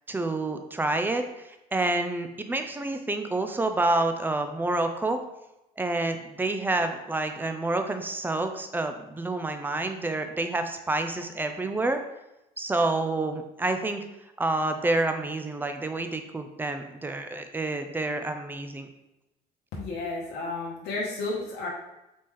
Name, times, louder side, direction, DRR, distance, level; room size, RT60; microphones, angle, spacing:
voice 1, 0.1-5.2 5.8-12.0 12.6-14.0 14.4-18.9, right 2 dB, 10° right, 7 dB, 0.4 m, -28 dB
voice 2, 19.7-21.7, left 3 dB, 80° left, -4 dB, 0.9 m, -32 dB
4.2 x 3.1 x 3.6 m, 0.92 s
cardioid pair, 110°, 17 cm